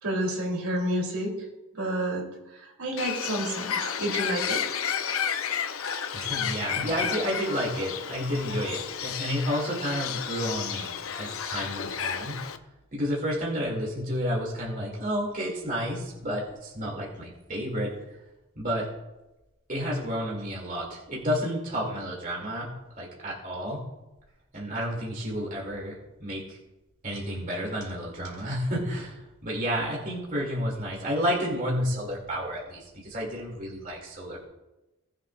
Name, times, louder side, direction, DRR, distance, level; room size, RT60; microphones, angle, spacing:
voice 1, 0.0-1.3 1.7-2.2 2.5-3.7 4.0-4.6 6.6-6.9, right 1 dB, 80° right, -1 dB, 3.2 m, -29 dB
Bird, 3.0-12.6, left 8 dB, 75° left, 0.6 m, -32 dB
voice 2, 5.9-12.4 12.9-17.9 18.6-18.9 19.7-22.7 23.0-23.8 24.5-26.6 27.0-34.5, equal, 40° right, -3 dB, 2.5 m, -31 dB
19.0 x 7.6 x 2.4 m, 1.0 s
head